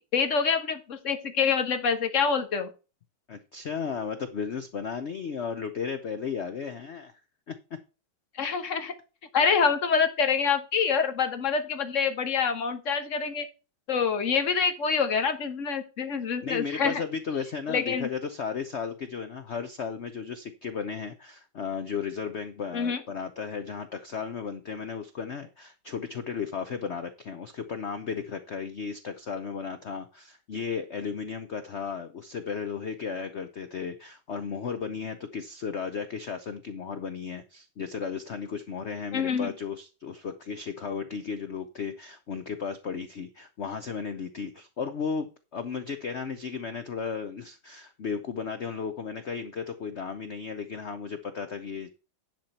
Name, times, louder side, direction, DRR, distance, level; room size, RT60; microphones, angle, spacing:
voice 1, 0.0-2.7 8.4-8.9 9.3-13.5 13.9-17.0 17.7-18.1 22.7-23.0 39.1-39.5, left 6 dB, 45° left, 7 dB, 1.3 m, -26 dB
voice 2, 3.3-7.1 7.5-7.8 16.4-52.0, left 6 dB, 85° left, 9 dB, 0.6 m, -35 dB
10.5 x 4.4 x 5.7 m, 0.32 s
omnidirectional pair, 2.2 m